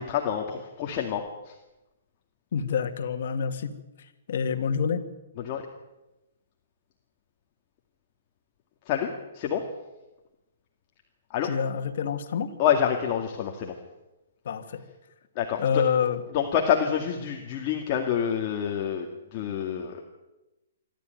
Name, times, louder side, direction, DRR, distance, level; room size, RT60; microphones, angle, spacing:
voice 1, 0.0-1.5 5.4-5.6 8.9-9.7 11.3-11.5 12.6-13.8 15.4-15.8 16.3-20.0, left 8 dB, 35° left, 2 dB, 2.1 m, -27 dB
voice 2, 2.5-3.7 4.3-5.0 11.4-12.5 14.4-14.8 15.6-16.2, left 7 dB, 60° left, 6 dB, 2.2 m, -27 dB
26.5 x 13.0 x 9.3 m, 1.0 s
hypercardioid pair, 155°, 0 cm